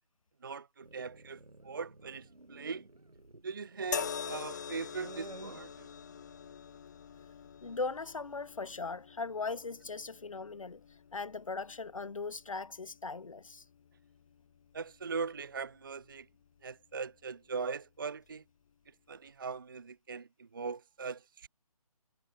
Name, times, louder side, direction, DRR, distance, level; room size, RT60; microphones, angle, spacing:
voice 1, 0.4-2.9 3.4-5.9 14.7-16.3 16.6-18.4 19.1-21.5, right 5 dB, 35° right, 0.4 m, -40 dB
sound 1, 0.8-6.5, right 2 dB, 75° right, 6.7 m, -53 dB
sound 2, 3.9-17.2 18.2-18.4, left 7 dB, 30° left, 0.9 m, -46 dB
voice 2, 7.6-10.8 11.1-13.6, left 4 dB, 60° left, 1.1 m, -39 dB
figure-of-eight pair, 150°, 19 cm